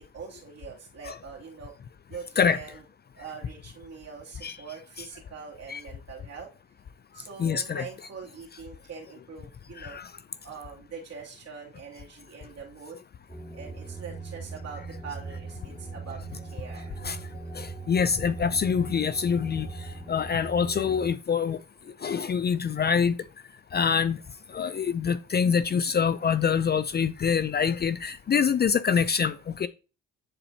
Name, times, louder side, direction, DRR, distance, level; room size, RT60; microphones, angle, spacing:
voice 1, 0.0-1.7 2.1-2.9 3.1-6.5 7.1-10.0 10.4-13.1 13.5-17.6 19.6-20.9 25.3-25.4 26.2-26.3 28.3-28.6 29.2-29.5, right 6 dB, 55° right, 2.7 m, -44 dB
voice 2, 7.4-7.8 9.8-10.0 17.0-17.2 17.6-19.7 20.1-21.6 22.0-23.1 23.7-24.2 24.5-29.7, left 6 dB, 35° left, 0.4 m, -25 dB
sound 1, 13.3-21.1, right 3 dB, 10° left, 3.2 m, -40 dB
10.0 x 4.3 x 2.8 m
cardioid pair, 90°, 30 cm